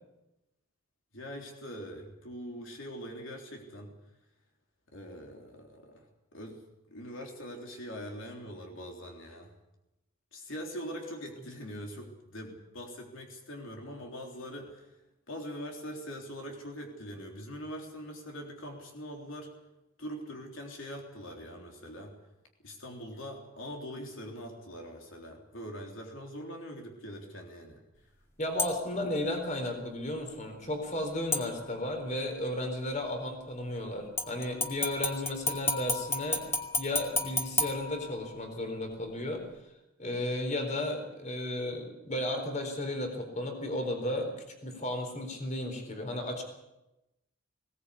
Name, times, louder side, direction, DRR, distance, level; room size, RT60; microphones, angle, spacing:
voice 1, 1.1-3.9 4.9-6.1 6.3-6.6 6.9-9.5 10.3-15.0 15.3-19.5 20.0-22.2 22.6-27.8, equal, 65° left, 1 dB, 3.6 m, -42 dB
voice 2, 28.4-36.4 36.8-39.4 40.0-44.3 44.6-46.4, left 1 dB, 35° left, 5 dB, 4.1 m, -34 dB
sound 1, 28.6-29.0 31.3-32.0 34.2-38.6 39.0-39.1, left 2 dB, 10° left, 2.2 m, -33 dB
20.5 x 18.5 x 8.4 m, 0.93 s
head